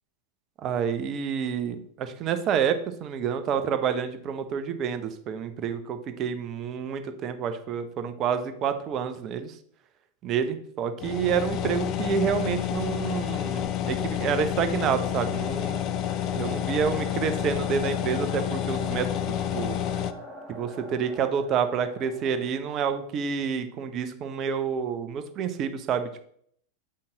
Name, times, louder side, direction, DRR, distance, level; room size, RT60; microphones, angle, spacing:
voice 1, 0.6-9.5 10.2-15.8 16.3-19.8 20.5-26.3, right 7 dB, 35° right, 9 dB, 0.8 m, -28 dB
sound 1, 11.0-20.1, left 11 dB, 35° left, 0.4 m, -29 dB
sound 2, 12.1-23.0, equal, 5° left, 2.0 m, -43 dB
7.6 x 5.6 x 3.9 m, 0.64 s
figure-of-eight pair, 90°, 0 cm